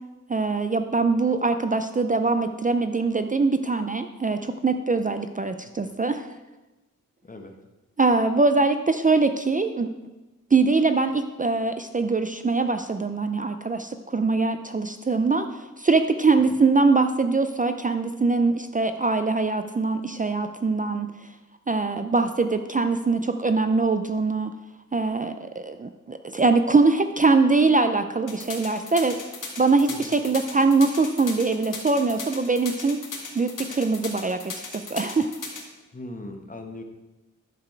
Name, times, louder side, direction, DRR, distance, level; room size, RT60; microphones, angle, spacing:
voice 1, 0.3-6.2 8.0-9.9 10.5-15.5 15.8-21.1 21.7-24.5 24.9-29.2 29.6-33.0 33.3-34.5 34.9-35.3, right 3 dB, 25° right, 8 dB, 0.4 m, -22 dB
voice 2, 7.2-7.5 16.5-16.6 29.9-30.2 35.9-36.8, left 2 dB, 25° left, 4 dB, 1.0 m, -39 dB
sound 1, 28.3-35.6, left 4 dB, 70° left, 1.8 m, -36 dB
11.0 x 6.9 x 4.5 m, 1.1 s
wide cardioid pair, 165°, 32 cm